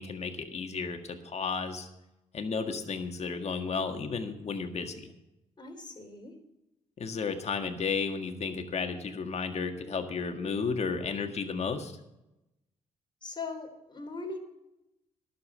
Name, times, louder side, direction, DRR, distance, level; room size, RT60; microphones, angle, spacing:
voice 1, 0.0-1.9 2.3-5.1 7.0-11.9, left 5 dB, 50° left, 6 dB, 1.8 m, -33 dB
voice 2, 5.6-6.3 13.2-14.4, left 3 dB, 35° left, 2 dB, 3.6 m, -40 dB
11.5 x 7.2 x 8.9 m, 0.92 s
hypercardioid pair, 50°, 14 cm